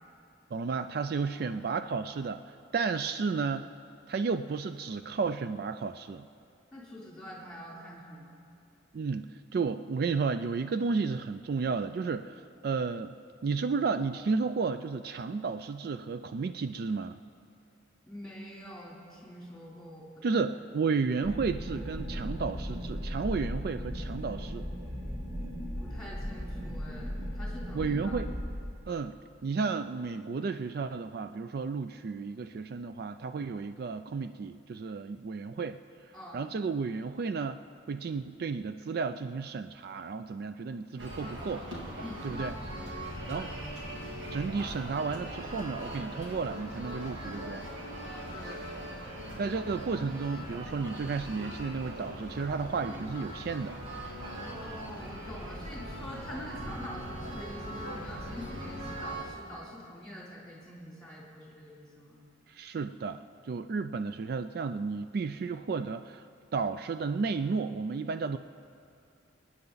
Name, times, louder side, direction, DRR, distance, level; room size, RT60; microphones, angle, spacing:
voice 1, 0.5-2.4 2.7-3.7 4.1-6.3 8.9-13.2 13.4-17.2 20.2-24.7 27.7-28.3 28.9-35.8 36.1-37.6 37.9-41.7 42.2-42.5 43.3-43.5 44.3-47.7 49.4-53.8 62.5-66.2 66.5-68.4, right 4 dB, 55° right, 10 dB, 0.3 m, -32 dB
voice 2, 6.7-8.3 18.1-20.4 25.8-28.2 36.1-36.4 42.0-42.3 43.3-43.5 48.0-48.7 54.3-62.2, equal, 5° left, -5 dB, 3.4 m, -45 dB
sound 1, 21.2-28.6, equal, 20° right, 2.1 m, -37 dB
sound 2, 41.0-59.2, equal, 90° right, 2.7 m, -40 dB
27.0 x 9.6 x 4.0 m, 2.4 s
head